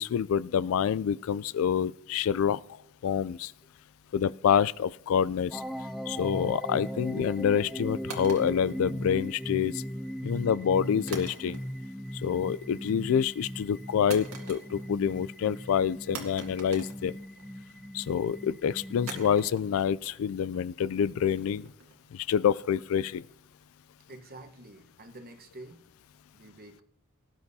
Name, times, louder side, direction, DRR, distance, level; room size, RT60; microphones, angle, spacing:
voice 1, 0.0-2.6 3.0-3.5 4.1-5.6 6.1-9.8 10.2-11.6 12.2-17.2 17.9-21.7 22.1-23.2, left 8 dB, 70° left, 19 dB, 0.3 m, -27 dB
sound 1, 5.5-19.5, equal, ahead, 0.4 m, -38 dB
sound 2, 8.1-9.5 11.1-11.9 12.2-12.7 14.1-15.0 15.3-15.4 16.1-17.7 19.1-22.1, right 4 dB, 80° right, 2.0 m, -44 dB
voice 2, 24.1-25.8 26.3-26.8, right 2 dB, 45° right, 7 dB, 1.1 m, -48 dB
18.5 x 10.5 x 2.7 m, 0.78 s
head